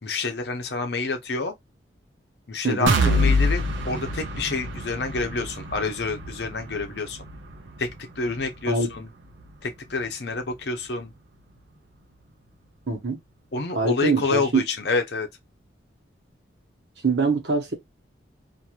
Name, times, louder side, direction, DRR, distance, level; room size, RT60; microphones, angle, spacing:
voice 1, 0.0-1.6 2.5-7.2 7.8-7.9 8.2-9.1 9.6-11.1 13.5-15.3, left 3 dB, 65° left, 0.7 m, -28 dB
voice 2, 2.6-2.9 8.7-8.9 12.9-13.2 13.7-14.6 17.0-17.7, right 3 dB, 65° right, 1.0 m, -23 dB
sound 1, 2.9-10.6 11.0-11.2 11.6-11.7, equal, 90° right, 0.7 m, -27 dB
2.9 x 2.6 x 2.4 m
head